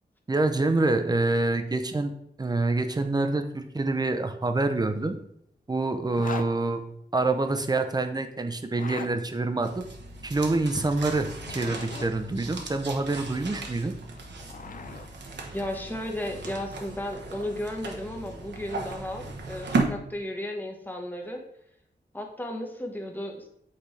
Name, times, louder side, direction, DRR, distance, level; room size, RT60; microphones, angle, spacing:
voice 1, 0.3-2.1 2.4-5.2 5.7-6.8 7.1-9.8 10.2-13.9, right 2 dB, 25° right, 7 dB, 0.6 m, -26 dB
Zipper (clothing), 6.1-6.5 8.6-9.1 11.2-12.1 14.0-15.1, left 5 dB, 50° left, 0.5 m, -39 dB
sound 1, 9.6-19.8, right 3 dB, 85° right, 1.0 m, -36 dB
voice 2, 15.5-21.4 22.1-23.5, left 1 dB, 10° left, 2 dB, 1.1 m, -34 dB
8.2 x 4.3 x 3.2 m, 0.73 s
wide cardioid pair, 115°, 18 cm